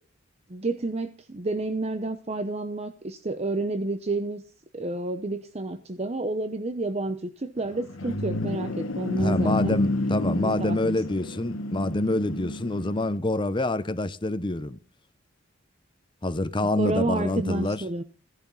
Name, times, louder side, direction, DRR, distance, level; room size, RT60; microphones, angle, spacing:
voice 1, 0.5-4.4 4.7-9.8 10.3-11.0 16.8-18.0, right 2 dB, 30° right, 0.8 m, -30 dB
sound 1, 7.6-13.2, left 2 dB, 80° left, 1.2 m, -30 dB
voice 2, 9.2-14.8 16.2-17.8, left 2 dB, 25° left, 0.7 m, -26 dB
16.0 x 11.0 x 4.0 m
head